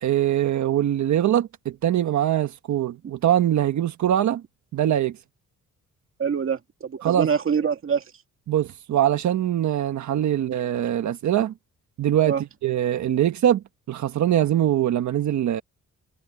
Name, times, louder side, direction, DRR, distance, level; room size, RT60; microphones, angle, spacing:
voice 1, 0.0-4.4 4.7-5.2 7.0-7.3 8.5-11.5 12.0-12.4 12.6-15.6, right 11 dB, 65° right, 1.4 m, -22 dB
voice 2, 6.2-8.0 12.2-12.4, right 6 dB, 45° right, 2.2 m, -25 dB
cardioid pair, 125°, 31 cm